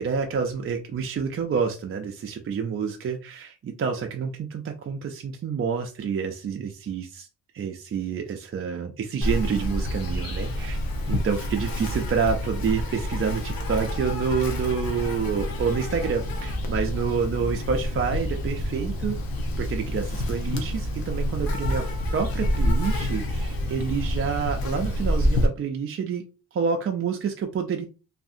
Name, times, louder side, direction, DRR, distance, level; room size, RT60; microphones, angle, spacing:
voice 1, 0.0-7.3 7.5-10.8 11.1-19.2 19.6-26.2 26.5-27.9, right 6 dB, 40° right, 3 dB, 0.4 m, -28 dB
Insect, 9.2-25.5, left 1 dB, 70° left, 0.8 m, -28 dB
2.7 x 2.5 x 2.5 m, 0.32 s
cardioid pair, 110°, 36 cm